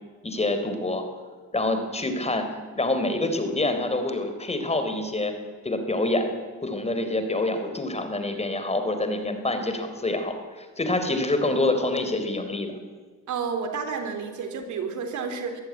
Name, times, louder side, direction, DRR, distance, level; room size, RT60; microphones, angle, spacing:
voice 1, 0.2-1.0 1.5-2.5 2.8-5.3 5.6-6.3 6.6-12.7, left 2 dB, 20° left, 7 dB, 3.8 m, -26 dB
voice 2, 13.3-15.6, right 5 dB, 75° right, 6 dB, 3.7 m, -30 dB
23.5 x 15.0 x 9.7 m, 1.5 s
cardioid pair, 90°, 30 cm